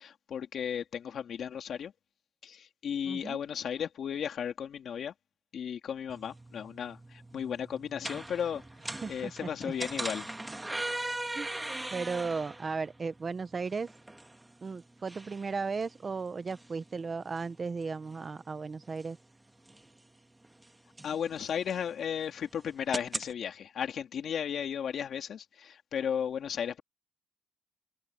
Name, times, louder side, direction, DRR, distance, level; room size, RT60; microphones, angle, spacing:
voice 1, 0.0-1.9 2.4-5.1 5.5-8.6 9.1-10.3 21.0-26.8, left 8 dB, 55° left, 2.7 m, -35 dB
voice 2, 3.0-3.4 9.0-9.5 11.3-11.5 11.9-13.9 14.6-19.2, right 4 dB, 30° right, 1.0 m, -35 dB
sound 1, 6.1-23.3, right 1 dB, 10° right, 2.0 m, -42 dB
cardioid pair, 115°, 0 cm